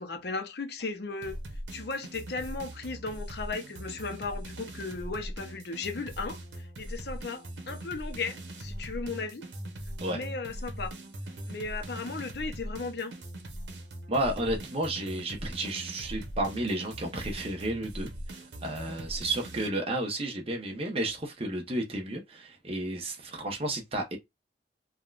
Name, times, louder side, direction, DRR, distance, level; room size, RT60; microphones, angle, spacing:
voice 1, 0.0-1.4 1.7-9.5 10.0-10.9 11.4-13.1, left 4 dB, 65° left, 0.6 m, -36 dB
sound 1, 1.2-19.7, right 1 dB, 85° right, 0.9 m, -41 dB
voice 2, 14.1-24.2, right 1 dB, 35° right, 0.8 m, -32 dB
3.5 x 2.3 x 2.4 m
head